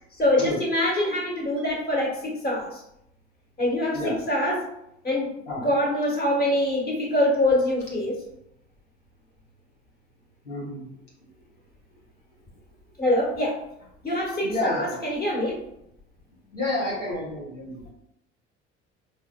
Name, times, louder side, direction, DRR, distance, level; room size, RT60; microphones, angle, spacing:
voice 1, 0.2-2.8 3.6-4.0 4.3-4.7 5.0-5.3 5.6-8.2 13.0-13.6 14.0-15.6, left 1 dB, 25° left, -2 dB, 1.3 m, -24 dB
voice 2, 10.4-11.0 14.4-15.0 16.5-17.9, left 2 dB, 85° left, -5 dB, 1.0 m, -30 dB
4.5 x 3.0 x 2.2 m, 0.80 s
figure-of-eight pair, 60°, 35 cm